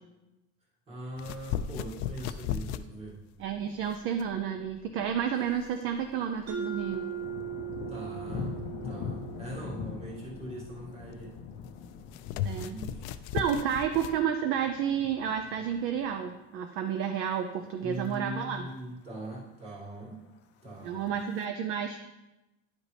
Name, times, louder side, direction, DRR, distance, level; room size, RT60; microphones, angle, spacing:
voice 1, 0.9-3.2 7.9-11.3 12.6-13.0 17.8-20.2 20.6-21.2, right 1 dB, 20° right, -5 dB, 1.9 m, -41 dB
sound 1, 1.2-14.2, left 9 dB, 90° left, 0.5 m, -38 dB
voice 2, 3.4-7.0 12.4-12.8 13.3-18.7 20.8-22.0, right 8 dB, 45° right, 7 dB, 0.4 m, -31 dB
Thunder, 5.3-5.9 6.2-16.5 16.9-17.3 17.7-18.1 18.4-18.5 18.7-18.8 19.2-19.7 20.5-21.4, left 6 dB, 35° left, 0.5 m, -43 dB
Mallet percussion, 6.5-11.0, right 8 dB, 90° right, 1.5 m, -39 dB
10.5 x 5.2 x 3.3 m, 1.0 s
cardioid pair, 175°, 31 cm